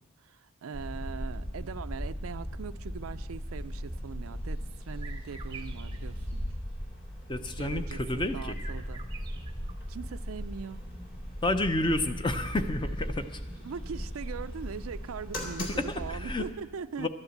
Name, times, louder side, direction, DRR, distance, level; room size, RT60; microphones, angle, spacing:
voice 1, 0.0-6.5 7.6-9.0 9.9-10.8 13.6-17.1, right 6 dB, 80° right, 13 dB, 0.4 m, -41 dB
sound 1, 0.7-16.5, equal, 45° left, 2.7 m, -38 dB
sound 2, 5.0-9.9 10.1-11.2, right 5 dB, 20° right, 0.7 m, -50 dB
voice 2, 7.3-8.6 11.4-13.4 16.1-16.5 17.0-17.1, left 1 dB, 20° left, 9 dB, 0.6 m, -30 dB
12.5 x 9.8 x 7.8 m, 1.2 s
head